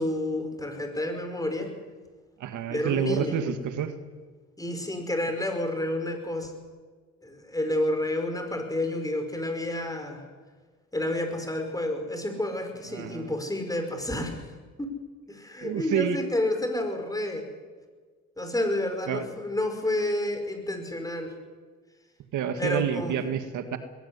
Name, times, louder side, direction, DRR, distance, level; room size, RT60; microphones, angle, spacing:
voice 1, 0.0-1.7 2.7-3.4 4.6-6.5 7.2-10.2 10.9-14.4 14.8-15.0 15.3-17.5 18.4-21.3 22.6-23.2, left 1 dB, 10° left, 5 dB, 5.5 m, -30 dB
voice 2, 2.4-3.9 12.9-13.3 15.6-16.2 19.1-19.3 22.3-23.8, right 9 dB, 80° right, 9 dB, 2.0 m, -28 dB
21.0 x 16.5 x 9.8 m, 1.5 s
cardioid pair, 90°, 30 cm